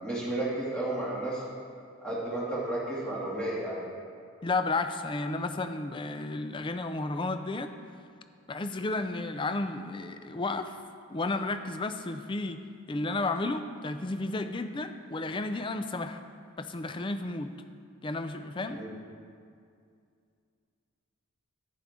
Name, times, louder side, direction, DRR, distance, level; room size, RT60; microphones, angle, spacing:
voice 1, 0.0-1.4 2.0-3.8 18.7-18.9, right 1 dB, 5° left, -8 dB, 2.3 m, -32 dB
voice 2, 4.4-7.7 8.5-10.8 11.1-12.6 12.9-16.2 16.6-17.5 18.0-18.8, left 2 dB, 20° left, 9 dB, 0.3 m, -32 dB
11.5 x 9.3 x 3.6 m, 2.3 s
head